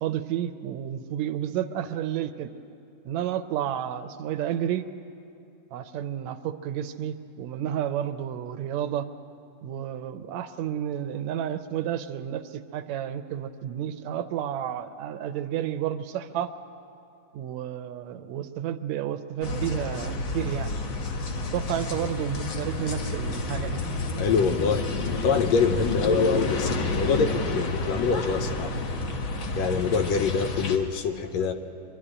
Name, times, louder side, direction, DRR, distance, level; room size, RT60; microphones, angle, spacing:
voice 1, 0.0-2.5 3.1-4.9 5.7-9.1 9.6-16.5 17.3-20.7 21.5-23.8, right 10 dB, 75° right, 10 dB, 1.9 m, -31 dB
sound 1, 19.4-30.8, left 2 dB, 50° left, 1.8 m, -30 dB
voice 2, 24.2-28.8 29.6-31.5, left 5 dB, 70° left, 7 dB, 1.9 m, -25 dB
24.5 x 12.0 x 9.9 m, 2.6 s
omnidirectional pair, 3.4 m